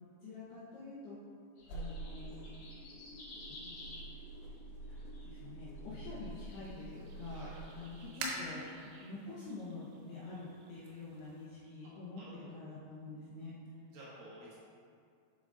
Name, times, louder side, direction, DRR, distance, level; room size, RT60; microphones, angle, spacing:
voice 1, 0.2-1.2 1.7-2.5 3.5-3.7 4.9-7.5 7.7-13.5, left 3 dB, 75° left, -8 dB, 2.5 m, -47 dB
sound 1, 1.6-8.1, right 2 dB, 90° left, 3.6 m, -47 dB
sound 2, 1.6-5.3 5.8-6.8, left 2 dB, 55° left, 2.2 m, -52 dB
sound 3, 6.3-11.5, right 3 dB, 85° right, 3.5 m, -48 dB
voice 2, 7.3-7.6 12.2-12.4 13.9-14.6, right 1 dB, 70° right, -8 dB, 3.0 m, -52 dB
7.6 x 6.8 x 2.6 m, 2.3 s
omnidirectional pair, 5.7 m